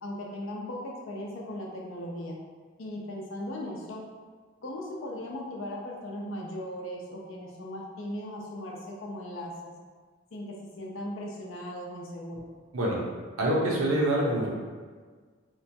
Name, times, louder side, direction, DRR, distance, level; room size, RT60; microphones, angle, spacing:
voice 1, 0.0-2.4 2.8-4.0 4.6-9.7 10.3-12.4, left 1 dB, 70° left, -1 dB, 0.5 m, -38 dB
voice 2, 13.4-14.5, right 1 dB, 85° right, -3 dB, 0.7 m, -25 dB
3.0 x 2.2 x 2.6 m, 1.5 s
head